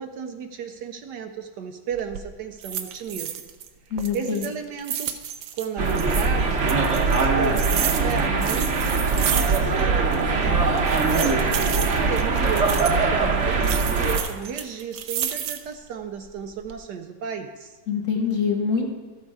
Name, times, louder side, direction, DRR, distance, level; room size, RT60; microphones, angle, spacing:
voice 1, 0.0-3.4 3.9-5.2 5.6-10.8 11.1-17.8, right 7 dB, 70° right, 6 dB, 1.2 m, -34 dB
sound 1, 1.9-2.3 2.6-3.7 4.0-6.3 6.7-9.9 10.1-10.2 10.8-13.0 13.6-15.8 16.3-16.8, right 9 dB, 85° right, 1.5 m, -31 dB
voice 2, 3.9-4.5 17.9-18.9, left 6 dB, 45° left, 0 dB, 1.6 m, -24 dB
sound 2, 5.8-14.2, right 4 dB, 45° right, 1.1 m, -22 dB
13.5 x 7.9 x 4.7 m, 1.3 s
omnidirectional pair, 2.1 m